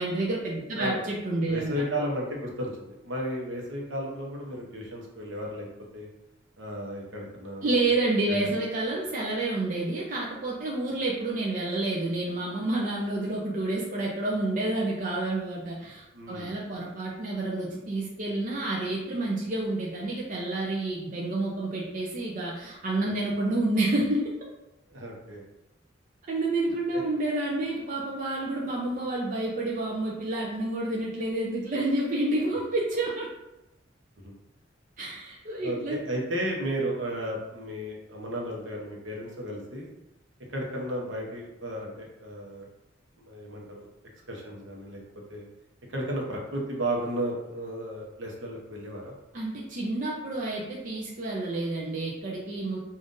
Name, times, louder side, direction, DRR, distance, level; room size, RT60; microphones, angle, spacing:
voice 1, 0.0-1.8 7.6-24.2 26.3-33.3 35.0-36.0 49.3-52.8, right 2 dB, 45° right, -4 dB, 0.5 m, -29 dB
voice 2, 1.5-5.7 5.9-6.1 6.6-7.9 8.3-8.6 16.1-16.6 24.9-25.4 26.9-27.0 34.2-34.3 35.6-39.9 40.5-42.7 43.2-43.9 44.3-45.0 45.3-45.4 45.9-49.1, right 1 dB, 75° right, -1 dB, 0.9 m, -34 dB
5.1 x 2.5 x 2.6 m, 0.92 s
head